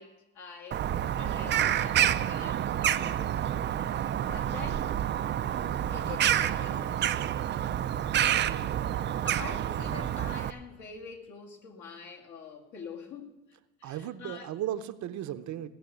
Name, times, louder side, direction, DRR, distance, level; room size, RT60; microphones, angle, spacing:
voice 1, 0.0-3.3 4.2-4.9 5.7-7.5 8.3-8.5 9.2-14.5, left 5 dB, 60° left, 2.3 m, -46 dB
Bird vocalization bird call bird song, 0.7-10.5, right 10 dB, 35° right, 0.4 m, -28 dB
voice 2, 13.8-15.7, right 11 dB, 55° right, 0.7 m, -35 dB
17.5 x 6.5 x 7.9 m
cardioid pair, 140°, 33 cm